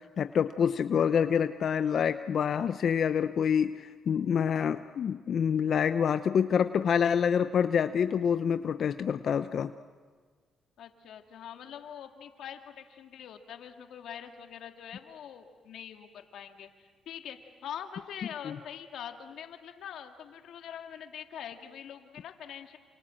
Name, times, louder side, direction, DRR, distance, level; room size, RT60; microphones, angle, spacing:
voice 1, 0.0-9.7 18.4-18.6, left 7 dB, 60° left, 10 dB, 0.8 m, -27 dB
voice 2, 10.8-22.8, left 9 dB, 75° left, 5 dB, 2.1 m, -44 dB
28.0 x 28.0 x 7.7 m, 1.5 s
cardioid pair, 90°, 0 cm